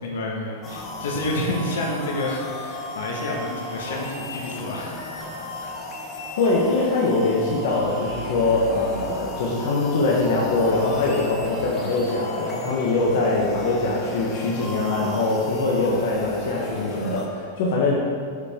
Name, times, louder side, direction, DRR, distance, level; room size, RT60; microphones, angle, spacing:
voice 1, 0.0-5.9, left 1 dB, 75° left, -1 dB, 1.6 m, -29 dB
sound 1, 0.6-17.3, left 2 dB, 20° left, 0.9 m, -34 dB
voice 2, 6.4-17.9, left 3 dB, 55° left, -4 dB, 1.1 m, -23 dB
9.2 x 5.5 x 3.6 m, 2.3 s
supercardioid pair, 170°, 0 cm